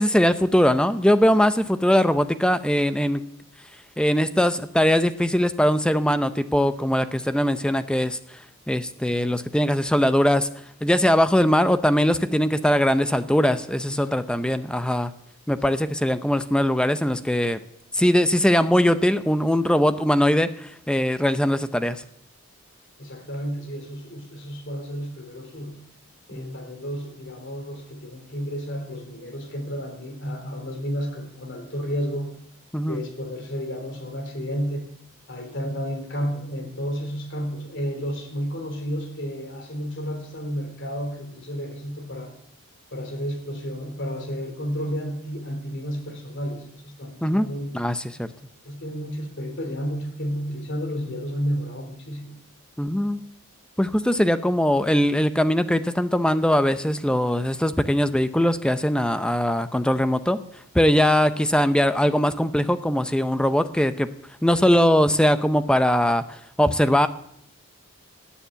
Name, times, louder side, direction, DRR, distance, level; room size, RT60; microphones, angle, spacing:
voice 1, 0.0-3.2 4.0-8.2 8.7-10.5 10.8-15.1 15.5-17.6 17.9-22.0 26.4-26.5 32.7-33.0 47.2-47.5 47.7-48.3 52.8-53.2 53.8-60.4 60.7-64.1 64.4-67.1, equal, 5° left, 11 dB, 0.5 m, -21 dB
voice 2, 23.0-25.8 26.3-32.3 32.9-34.9 35.3-42.3 42.9-47.7 48.6-52.4, equal, 55° left, 5 dB, 3.4 m, -31 dB
18.5 x 7.2 x 9.1 m, 0.74 s
head